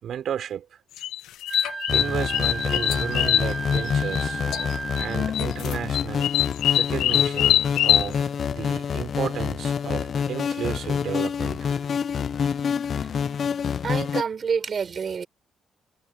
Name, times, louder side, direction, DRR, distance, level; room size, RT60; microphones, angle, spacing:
voice 1, 0.0-0.7 1.9-4.4 5.0-6.4 6.8-11.7, right 9 dB, 65° right, 4.4 m, -33 dB
sound 1, 1.0-4.2 4.5-5.1 5.3-8.1, left 12 dB, 85° left, 0.9 m, -23 dB
Wind instrument woodwind instrument, 1.5-5.3, right 4 dB, 25° right, 1.1 m, -33 dB
sound 2, 1.9-14.2, left 7 dB, 55° left, 0.7 m, -27 dB
voice 2, 13.8-15.3, right 6 dB, 45° right, 5.0 m, -27 dB
cardioid pair, 90°, 0 cm